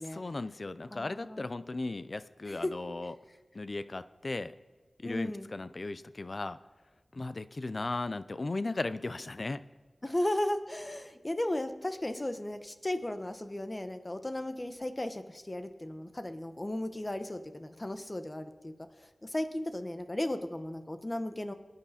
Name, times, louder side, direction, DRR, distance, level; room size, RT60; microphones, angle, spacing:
voice 1, 0.1-3.1 3.5-4.5 5.0-6.6 7.1-9.6, left 2 dB, 50° left, 13 dB, 0.5 m, -36 dB
voice 2, 0.9-1.5 2.5-2.7 5.0-5.5 10.0-18.7 19.0-21.5, left 1 dB, 25° left, 8 dB, 1.1 m, -35 dB
26.5 x 9.7 x 4.3 m, 1.3 s
wide cardioid pair, 70°, 0 cm